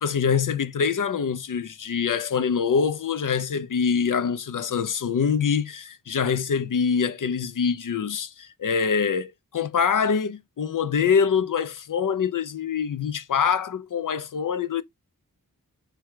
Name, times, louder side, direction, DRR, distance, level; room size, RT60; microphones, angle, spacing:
voice 1, 0.0-14.8, left 6 dB, 65° left, 0.6 m, -24 dB
4.7 x 2.3 x 4.5 m
cardioid pair, 50°, 35 cm